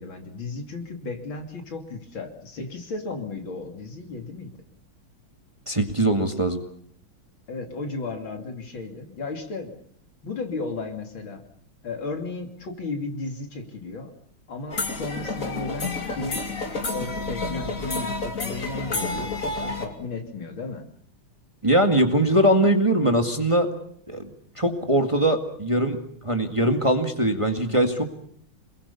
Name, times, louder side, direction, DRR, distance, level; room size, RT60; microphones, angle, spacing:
voice 1, 0.0-4.6 7.5-9.8 10.2-11.4 11.8-14.1 14.5-16.5 16.9-20.9, left 3 dB, 75° left, 4 dB, 3.6 m, -34 dB
voice 2, 5.7-6.6 21.6-23.7 24.1-24.3 24.6-26.0 26.2-28.0, right 1 dB, 15° right, 5 dB, 1.9 m, -21 dB
sound 1, 14.7-19.9, left 3 dB, 40° left, 3.1 m, -30 dB
28.0 x 21.5 x 7.0 m, 0.64 s
omnidirectional pair, 2.2 m